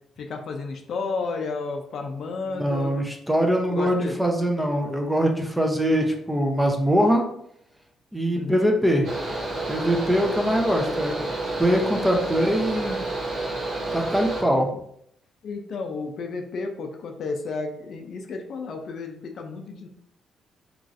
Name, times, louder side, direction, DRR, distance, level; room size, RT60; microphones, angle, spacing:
voice 1, 0.2-2.9 3.7-4.2 8.3-8.7 10.5-10.6 12.5-12.6 15.4-19.9, left 4 dB, 60° left, 4 dB, 0.4 m, -32 dB
voice 2, 2.5-7.3 8.1-9.1 9.7-11.2 11.6-13.0 13.9-14.7, equal, 5° right, 2 dB, 0.6 m, -22 dB
Mechanical fan, 9.0-14.4, right 2 dB, 80° right, 1.0 m, -29 dB
3.1 x 2.4 x 2.5 m, 0.70 s
cardioid pair, 90°, 0 cm